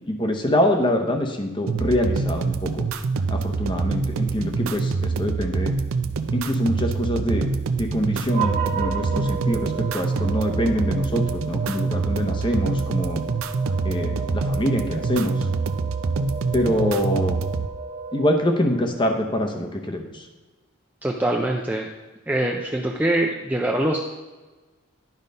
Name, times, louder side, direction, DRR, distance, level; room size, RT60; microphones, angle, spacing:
voice 1, 0.1-2.8 3.3-5.7 6.3-7.5 7.8-13.2 13.8-15.5 16.5-17.4 18.1-20.3, left 1 dB, 20° left, 4 dB, 0.8 m, -25 dB
sound 1, 1.7-17.7, right 4 dB, 70° right, 0.5 m, -25 dB
sound 2, 8.3-18.8, right 5 dB, 40° right, 0.9 m, -34 dB
voice 2, 21.0-21.9 22.3-24.0, right 1 dB, 5° right, 0 dB, 0.4 m, -23 dB
10.5 x 4.0 x 5.3 m, 1.3 s
head